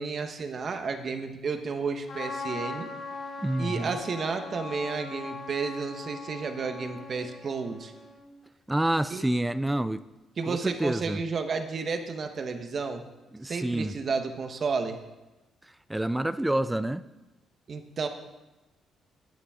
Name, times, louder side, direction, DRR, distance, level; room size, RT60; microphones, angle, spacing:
voice 1, 0.0-2.9 3.6-7.9 9.1-9.2 10.4-13.0 13.4-15.0 17.7-18.1, right 4 dB, 50° right, 1.4 m, -32 dB
Trumpet, 2.1-8.3, left 4 dB, 55° left, 3.0 m, -40 dB
voice 2, 3.4-4.0 8.7-10.0 10.5-11.2 13.3-13.9 15.9-17.0, right 1 dB, 10° right, 0.5 m, -28 dB
17.0 x 10.0 x 3.8 m
cardioid pair, 90°, 0 cm